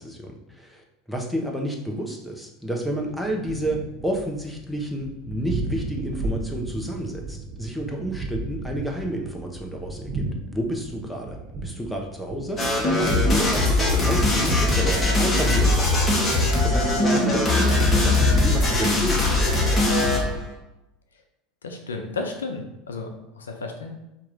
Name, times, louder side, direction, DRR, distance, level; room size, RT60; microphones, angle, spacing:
voice 1, 0.0-10.2 10.5-11.4 11.6-12.6 12.9-19.5, right 1 dB, ahead, 0 dB, 1.1 m, -30 dB
Thunder, 3.0-18.3, right 2 dB, 45° right, 1.2 m, -36 dB
sound 1, 12.6-20.4, left 2 dB, 25° left, 1.7 m, -20 dB
voice 2, 21.6-24.0, left 3 dB, 90° left, 4 dB, 0.6 m, -33 dB
4.6 x 3.0 x 3.9 m, 0.92 s
hypercardioid pair, 85°, 0 cm